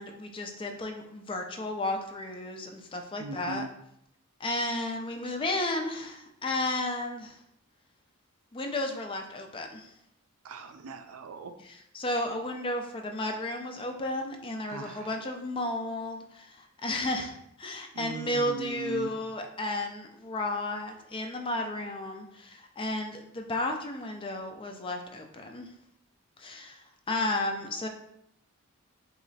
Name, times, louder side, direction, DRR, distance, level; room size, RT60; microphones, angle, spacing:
voice 1, 0.0-3.7 4.4-7.4 8.5-9.9 11.6-25.7 26.4-27.9, left 1 dB, 25° left, 4 dB, 0.4 m, -33 dB
voice 2, 3.2-3.7 10.4-11.5 14.7-15.1 17.9-19.1, right 3 dB, 80° right, 8 dB, 0.4 m, -39 dB
3.1 x 2.9 x 4.0 m, 0.75 s
head